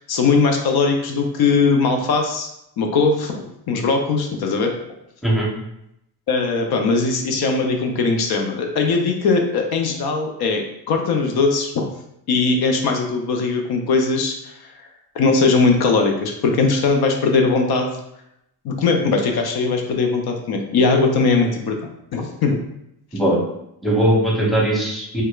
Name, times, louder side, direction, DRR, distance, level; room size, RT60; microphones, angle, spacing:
voice 1, 0.1-2.5 2.8-4.7 6.3-11.9 12.3-14.5 15.2-18.0 18.6-22.6, left 4 dB, 65° left, 3 dB, 0.6 m, -20 dB
voice 2, 23.8-25.2, right 1 dB, ahead, -4 dB, 0.8 m, -19 dB
4.6 x 2.2 x 2.3 m, 0.81 s
cardioid pair, 110°, 41 cm